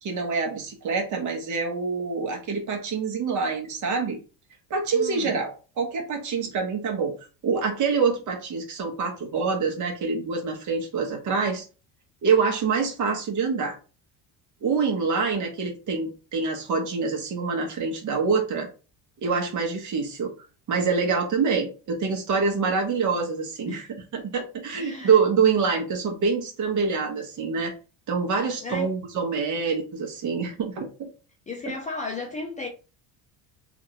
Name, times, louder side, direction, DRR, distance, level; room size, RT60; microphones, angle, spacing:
voice 1, 0.0-4.2 4.7-7.1 7.4-11.6 12.2-13.8 14.6-18.7 19.2-20.3 20.7-23.9 24.1-27.7 28.1-31.1, right 5 dB, 45° right, 1.1 m, -26 dB
voice 2, 4.9-5.4 23.7-23.9 24.7-25.2 28.6-28.9 31.5-32.7, left 3 dB, 20° left, 0.4 m, -34 dB
2.9 x 2.6 x 2.9 m
cardioid pair, 140°, 42 cm